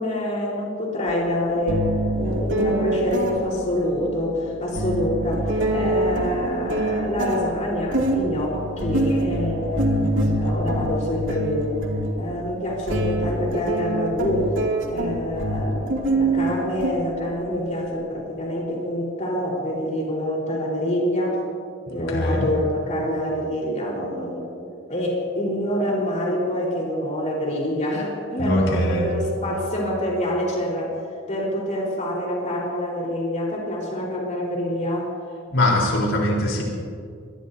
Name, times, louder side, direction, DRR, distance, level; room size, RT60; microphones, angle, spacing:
voice 1, 0.0-1.9 2.2-11.8 12.2-14.5 14.9-21.4 21.9-30.9 31.3-35.1, left 1 dB, 40° left, -3 dB, 4.1 m, -26 dB
sound 1, 1.1-1.2 1.7-17.6, right 1 dB, 75° right, 2.4 m, -25 dB
voice 2, 22.1-22.4 28.4-29.1 35.5-36.6, left 1 dB, 85° left, -2 dB, 3.9 m, -21 dB
25.0 x 21.0 x 2.7 m, 2.3 s
head